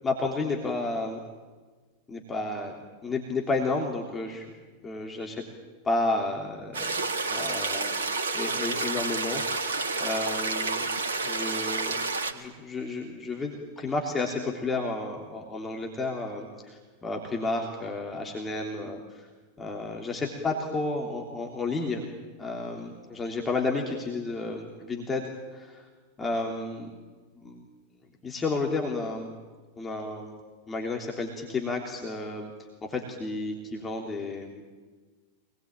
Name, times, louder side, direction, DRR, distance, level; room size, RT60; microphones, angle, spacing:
voice 1, 0.0-1.2 2.1-2.7 3.0-4.5 4.8-5.4 5.9-7.0 7.3-8.0 8.3-9.7 10.0-10.9 11.2-12.0 12.3-19.3 19.6-22.1 22.4-25.9 26.2-26.9 27.4-27.6 28.2-29.3 29.8-30.3 30.7-32.5 32.8-34.6, left 3 dB, 15° left, 0 dB, 3.3 m, -31 dB
sound 1, 6.7-12.3, right 3 dB, 65° right, 2.1 m, -29 dB
26.0 x 20.5 x 8.9 m, 1.4 s
figure-of-eight pair, 90°, 0 cm